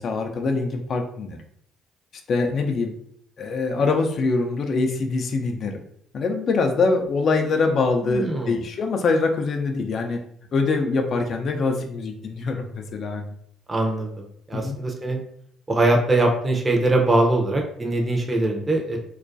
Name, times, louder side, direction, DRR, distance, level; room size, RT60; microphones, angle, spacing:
voice 1, 0.0-1.4 2.3-2.9 3.4-5.8 6.1-10.2 10.5-13.3 14.5-14.8, left 3 dB, 55° left, 4 dB, 0.3 m, -24 dB
voice 2, 8.0-8.6 13.7-14.1 14.5-15.2 15.7-19.0, right 2 dB, 25° right, 1 dB, 0.5 m, -22 dB
2.3 x 2.2 x 2.5 m, 0.68 s
supercardioid pair, 65°, 0 cm